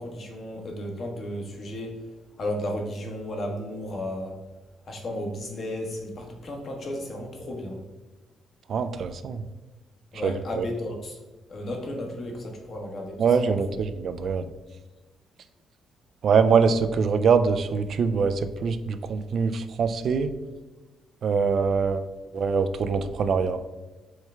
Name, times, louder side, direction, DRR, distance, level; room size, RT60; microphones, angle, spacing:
voice 1, 0.0-2.0 2.4-4.4 4.9-7.8 10.1-11.2 11.5-13.8, left 1 dB, 50° left, 1 dB, 1.1 m, -34 dB
voice 2, 8.7-9.4 10.2-10.7 13.2-14.5 16.2-20.3 21.2-22.1 22.3-23.6, right 5 dB, 60° right, 10 dB, 0.3 m, -23 dB
4.7 x 3.3 x 3.3 m, 1.2 s
cardioid pair, 90°, 0 cm